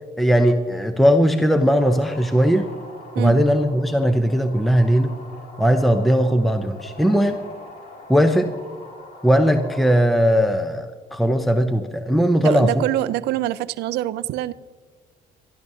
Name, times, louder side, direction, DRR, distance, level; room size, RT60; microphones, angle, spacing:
voice 1, 0.2-2.7 3.2-5.1 5.6-7.4 8.1-8.5 9.2-12.8, equal, ahead, 6 dB, 0.7 m, -18 dB
sound 1, 1.7-9.9, left 2 dB, 55° left, 2.5 m, -43 dB
voice 2, 12.4-14.5, right 14 dB, 80° right, 14 dB, 0.5 m, -24 dB
26.0 x 12.5 x 2.8 m, 1.5 s
cardioid pair, 110°, 17 cm